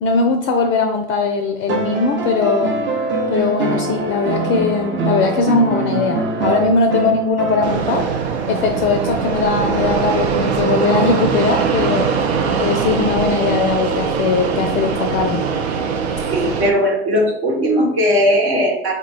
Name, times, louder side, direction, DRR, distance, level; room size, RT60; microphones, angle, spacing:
voice 1, 0.0-2.8 3.3-8.1 8.5-12.2 12.6-15.4, left 4 dB, 40° left, 5 dB, 0.4 m, -19 dB
sound 1, 1.7-8.1 9.6-9.7, right 2 dB, 35° right, 0.7 m, -23 dB
Fixed-wing aircraft airplane, 7.6-16.7, right 6 dB, 85° right, 0.5 m, -21 dB
voice 2, 16.3-18.9, equal, 65° right, -1 dB, 1.1 m, -17 dB
3.2 x 2.1 x 3.8 m, 0.77 s
figure-of-eight pair, 65°, 32 cm